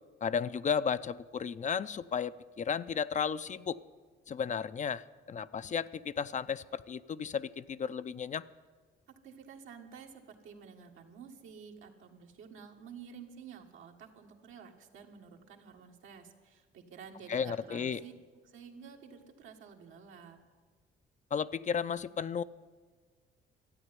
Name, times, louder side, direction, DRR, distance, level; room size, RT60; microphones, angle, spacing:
voice 1, 0.2-3.8 4.3-8.4 17.3-18.0 21.3-22.4, left 7 dB, 40° left, 15 dB, 0.5 m, -34 dB
voice 2, 9.1-18.1 18.4-20.4, right 6 dB, 85° right, 2 dB, 1.7 m, -51 dB
13.0 x 8.9 x 9.7 m, 1.5 s
cardioid pair, 90°, 20 cm